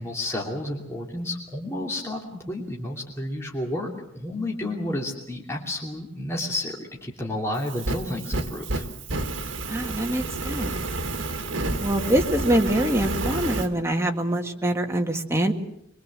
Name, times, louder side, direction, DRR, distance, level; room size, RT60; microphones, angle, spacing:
voice 1, 0.0-2.2 2.5-8.9, left 1 dB, 15° left, -2 dB, 2.8 m, -31 dB
Fire, 7.6-13.7, right 2 dB, 65° right, 2.0 m, -30 dB
voice 2, 9.7-10.7 11.8-15.5, right 1 dB, 15° right, 3 dB, 1.8 m, -24 dB
23.5 x 23.5 x 7.6 m, 0.79 s
head